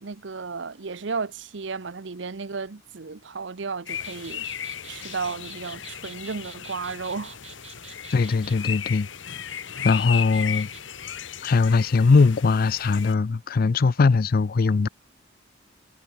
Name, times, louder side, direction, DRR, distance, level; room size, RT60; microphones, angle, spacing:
voice 1, 0.0-4.5 4.9-7.4, right 4 dB, 65° right, 0.8 m, -33 dB
sound 1, 3.9-13.1, left 9 dB, 70° left, 1.4 m, -36 dB
sound 2, 4.0-8.6 9.9-10.8, right 8 dB, 35° right, 1.8 m, -47 dB
voice 2, 8.1-9.1 9.8-10.7 11.4-14.9, left 4 dB, 50° left, 0.4 m, -20 dB
head